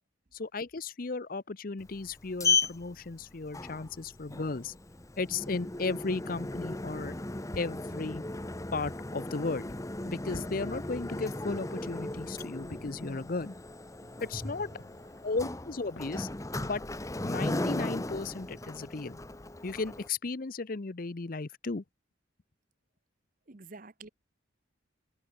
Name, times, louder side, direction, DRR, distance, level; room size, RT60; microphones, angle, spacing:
voice 1, 0.3-4.7 5.2-7.1 7.6-8.2 8.7-9.7 10.0-13.5 14.2-14.7 15.2-16.3 16.6-16.8 17.2-19.2 19.6-21.8, left 3 dB, 45° left, 0.7 m, -35 dB
Sliding door, 1.8-20.1, left 2 dB, 15° left, 0.8 m, -36 dB
sound 1, 12.7-16.8, left 1 dB, 70° left, 4.2 m, -53 dB
voice 2, 14.7-15.2 23.5-24.1, right 3 dB, 45° right, 1.1 m, -50 dB
head